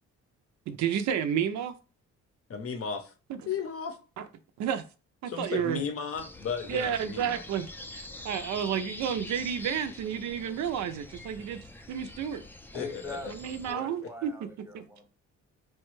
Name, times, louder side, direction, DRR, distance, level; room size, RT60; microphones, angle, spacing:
voice 1, 0.7-1.7 3.3-3.4 4.2-4.3 4.6-4.8 5.2-5.8 6.7-11.6 11.9-12.4 13.3-14.3 14.7-14.8, right 8 dB, 70° right, 0.4 m, -31 dB
voice 2, 2.5-3.1 3.5-4.0 5.3-7.4 12.7-13.3 13.7-13.8, left 6 dB, 50° left, 0.7 m, -35 dB
sound 1, 6.1-13.7, left 2 dB, 5° left, 0.3 m, -45 dB
voice 3, 12.7-15.0, left 2 dB, 10° right, 0.8 m, -43 dB
3.0 x 2.2 x 3.1 m
cardioid pair, 90°, 30 cm